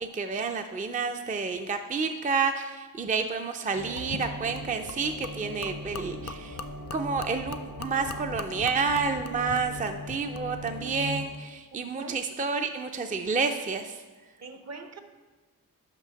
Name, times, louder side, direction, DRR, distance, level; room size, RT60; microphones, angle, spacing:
voice 1, 0.0-6.6 6.9-14.0, right 4 dB, 25° right, 6 dB, 0.4 m, -30 dB
sound 1, 3.7-11.3, equal, 70° right, 2.2 m, -40 dB
Gurgling / Liquid, 4.0-10.8, left 5 dB, 50° left, 0.4 m, -42 dB
voice 2, 11.7-12.2 14.4-15.0, right 3 dB, 50° right, 8 dB, 0.7 m, -42 dB
5.9 x 5.6 x 5.7 m, 1.3 s
wide cardioid pair, 80°, 34 cm